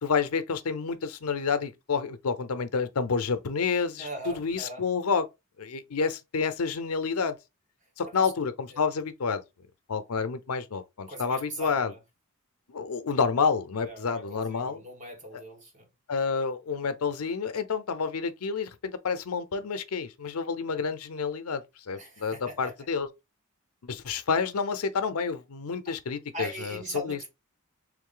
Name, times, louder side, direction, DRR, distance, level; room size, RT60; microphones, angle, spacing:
voice 1, 0.0-5.3 5.6-7.4 8.0-9.4 9.9-11.9 12.7-14.8 16.1-23.1 23.8-26.8 27.0-27.2, left 5 dB, 90° left, 0.6 m, -29 dB
voice 2, 4.0-4.9 8.0-8.3 8.7-8.8 11.1-12.0 13.8-15.9 21.9-22.7 25.8-25.9 26.3-27.3, right 1 dB, 35° right, 1.4 m, -40 dB
3.5 x 3.2 x 3.7 m
head